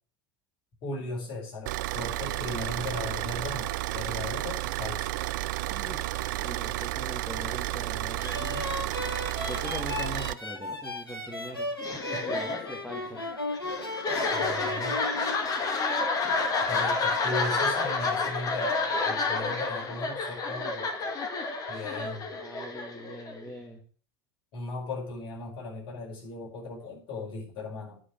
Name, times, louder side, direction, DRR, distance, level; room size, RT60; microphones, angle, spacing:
voice 1, 0.8-5.1 12.1-12.4 14.3-15.0 16.6-21.1 21.7-22.4 24.5-28.0, left 2 dB, 45° left, -2 dB, 5.4 m, -37 dB
Car / Idling, 1.7-10.3, right 16 dB, 55° right, 0.4 m, -32 dB
voice 2, 5.7-8.7 9.4-11.7 12.3-13.2 22.4-23.8, left 1 dB, 10° left, -1 dB, 2.6 m, -41 dB
sound 1, 8.2-15.4, left 1 dB, 90° left, 1.1 m, -36 dB
sound 2, 11.8-23.5, left 3 dB, 30° left, 2.1 m, -29 dB
10.0 x 5.3 x 7.7 m, 0.43 s
figure-of-eight pair, 75°, 12 cm